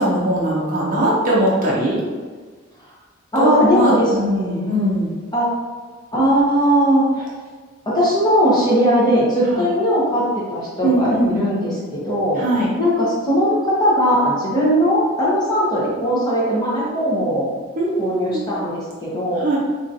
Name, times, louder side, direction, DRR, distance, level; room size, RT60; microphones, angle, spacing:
voice 1, 0.0-2.0 3.4-5.1 9.5-9.6 10.8-11.4 12.4-12.7 17.8-18.5 19.4-19.6, right 1 dB, 40° right, -5 dB, 0.6 m, -20 dB
voice 2, 3.3-4.8 5.3-5.5 6.1-7.3 7.9-12.4 12.8-17.5 18.0-19.4, equal, 20° left, -7 dB, 0.9 m, -19 dB
3.7 x 2.9 x 2.6 m, 1.5 s
head